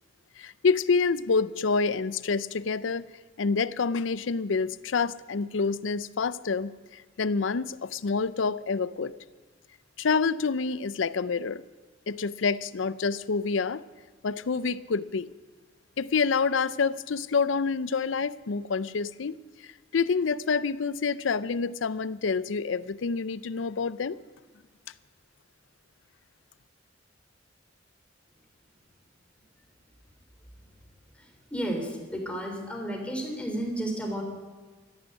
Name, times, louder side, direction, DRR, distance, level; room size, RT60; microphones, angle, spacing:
voice 1, 0.4-3.1 3.4-9.1 10.0-11.6 12.1-13.8 14.2-15.3 16.0-24.2, left 5 dB, 80° left, 17 dB, 0.5 m, -27 dB
voice 2, 31.5-34.2, right 1 dB, 5° left, 1 dB, 3.5 m, -32 dB
14.0 x 11.5 x 9.0 m, 1.4 s
head